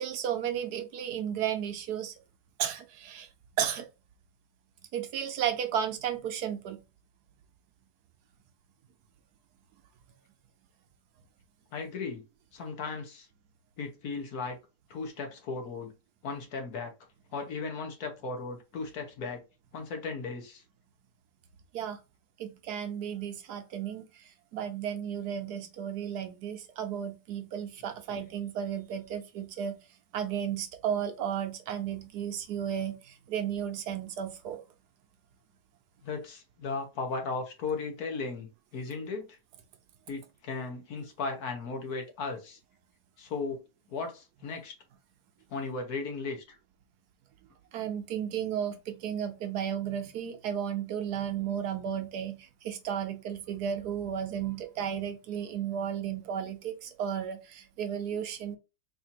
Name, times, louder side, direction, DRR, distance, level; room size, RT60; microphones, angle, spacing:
voice 1, 0.0-2.1 2.6-3.3 3.6-3.9 4.9-6.8 21.7-22.0 22.4-29.7 30.1-34.6 47.7-58.6, right 9 dB, 70° right, 1.1 m, -34 dB
voice 2, 11.7-12.2 12.5-13.3 13.8-14.6 14.9-15.9 16.2-16.9 17.3-19.4 19.7-20.6 36.0-39.4 40.1-42.6 43.2-43.6 43.9-44.7 45.5-46.6, left 4 dB, 60° left, 1.5 m, -36 dB
4.2 x 2.7 x 2.8 m
omnidirectional pair, 1.9 m